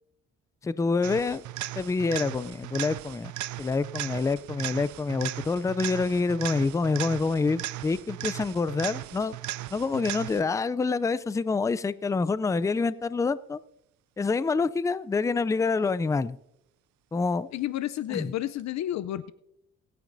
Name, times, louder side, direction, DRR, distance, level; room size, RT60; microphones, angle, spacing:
voice 1, 0.6-1.4 1.8-3.3 3.6-9.4 9.7-13.6 14.2-16.4 17.1-17.5 18.1-18.3, left 4 dB, 10° left, 17 dB, 0.4 m, -27 dB
sound 1, 1.0-10.6 18.6-18.7, right 15 dB, 75° right, 0.5 m, -37 dB
voice 2, 17.5-19.3, left 13 dB, 65° left, 15 dB, 0.5 m, -31 dB
24.0 x 9.2 x 2.6 m, 0.79 s
cardioid pair, 90°, 30 cm